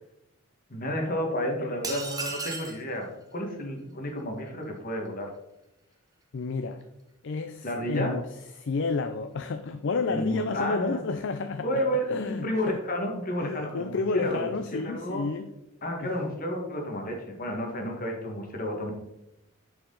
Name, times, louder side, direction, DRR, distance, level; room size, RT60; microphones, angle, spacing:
voice 1, 0.7-5.3 7.6-8.1 10.1-11.0 11.6-15.2 15.8-18.9, equal, 40° left, 2 dB, 1.6 m, -31 dB
sound 1, 1.8-2.8, right 3 dB, 15° right, 0.9 m, -34 dB
voice 2, 6.3-6.8 7.2-8.3 8.6-11.8 12.1-12.8 13.4-15.5 16.0-16.1, left 4 dB, 55° left, 8 dB, 0.4 m, -31 dB
10.5 x 4.8 x 3.8 m, 0.88 s
head